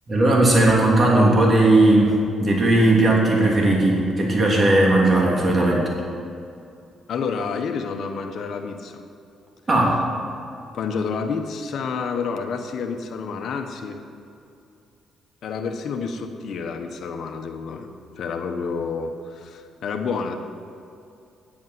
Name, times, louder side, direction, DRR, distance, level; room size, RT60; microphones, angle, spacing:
voice 1, 0.1-5.9 9.7-9.9, right 2 dB, 35° right, -3 dB, 3.3 m, -17 dB
voice 2, 7.1-9.0 10.7-14.0 15.4-17.9 18.2-20.4, left 5 dB, 65° left, 4 dB, 1.2 m, -29 dB
9.7 x 8.5 x 7.9 m, 2.6 s
cardioid pair, 90°, 0 cm